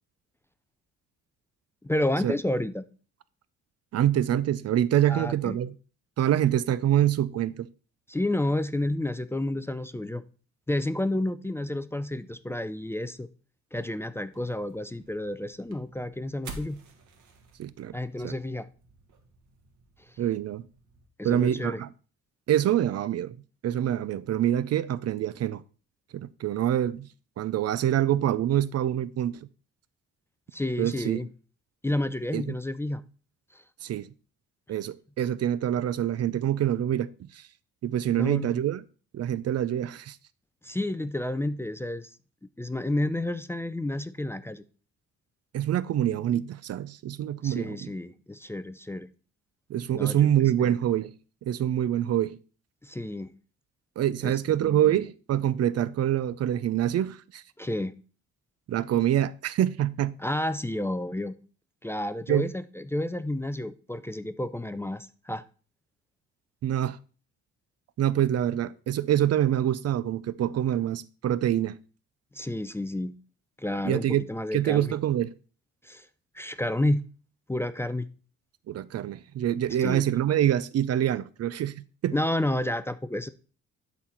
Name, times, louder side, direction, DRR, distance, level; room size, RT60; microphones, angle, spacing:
voice 1, 1.8-2.8 5.1-5.6 8.1-10.2 10.7-13.3 13.7-16.8 17.9-18.7 21.2-21.8 30.5-31.3 31.8-33.0 33.5-33.6 38.1-38.6 40.6-42.1 42.6-44.6 47.4-49.1 49.9-50.7 52.8-53.3 54.2-55.0 57.6-57.9 60.2-61.3 61.8-65.4 72.3-73.1 73.6-74.9 75.8-76.1 76.3-77.0 77.5-78.1 79.8-80.1 82.1-83.3, left 1 dB, 10° left, 0.4 m, -30 dB
voice 2, 3.9-5.7 6.2-7.7 17.6-17.9 18.2-18.3 20.2-20.7 21.2-21.9 22.5-23.4 23.6-25.6 26.1-27.1 27.4-29.4 30.8-31.2 32.3-32.5 33.8-34.1 34.7-37.5 37.8-38.8 39.1-40.2 45.5-47.9 49.7-51.1 51.4-52.4 54.0-57.4 58.7-60.1 62.3-62.5 66.6-67.0 68.0-71.8 73.8-74.2 74.5-75.3 78.7-82.1, right 11 dB, 55° right, 0.5 m, -26 dB
sound 1, 14.3-21.1, right 4 dB, 70° right, 1.7 m, -50 dB
11.5 x 4.2 x 4.4 m
cardioid pair, 90°, 30 cm